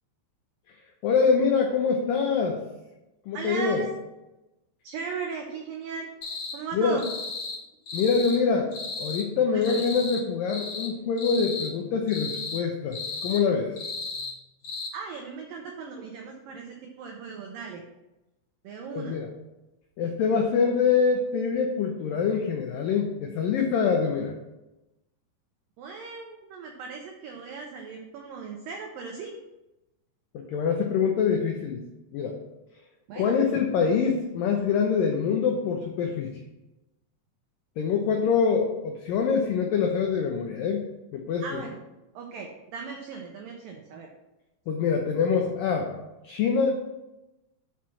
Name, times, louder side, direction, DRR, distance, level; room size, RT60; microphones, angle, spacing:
voice 1, 1.0-2.6 3.3-3.8 6.7-7.0 7.9-8.7 9.0-13.7 18.9-19.3 20.0-24.3 30.3-31.8 32.1-32.4 33.2-36.3 37.8-40.8 41.1-41.6 44.7-45.9 46.2-46.7, left 5 dB, 85° left, 2 dB, 1.9 m, -25 dB
voice 2, 3.3-3.9 4.8-6.1 6.5-7.0 9.5-9.8 14.9-17.8 18.6-19.2 25.8-29.4 33.1-33.4 41.4-41.8 42.2-44.1, right 5 dB, 85° right, 2 dB, 1.9 m, -37 dB
sound 1, 6.2-6.6 7.0-7.6 7.9-8.4 8.7-9.2 9.6-10.2 10.5-10.9 11.2-11.7 12.1-12.6 12.9-13.4 13.8-14.3 14.6-14.9, left 4 dB, 50° left, 2.5 m, -34 dB
6.0 x 5.7 x 6.3 m, 0.98 s
omnidirectional pair, 5.0 m